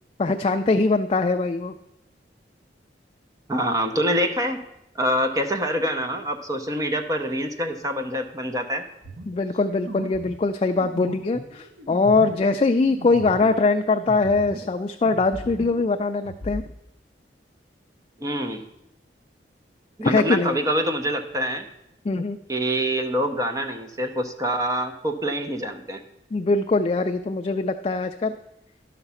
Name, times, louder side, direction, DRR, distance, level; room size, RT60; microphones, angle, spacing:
voice 1, 0.2-1.7 9.3-16.6 20.0-20.6 22.0-22.4 26.3-28.3, left 3 dB, 30° left, 6 dB, 0.3 m, -22 dB
voice 2, 3.5-4.6 4.9-8.9 18.2-18.6 20.0-21.7 22.5-26.0, equal, 20° right, 5 dB, 0.7 m, -25 dB
sound 1, 9.0-14.8 15.1-16.7, right 1 dB, 80° right, 1.2 m, -38 dB
11.5 x 5.9 x 5.5 m, 0.84 s
head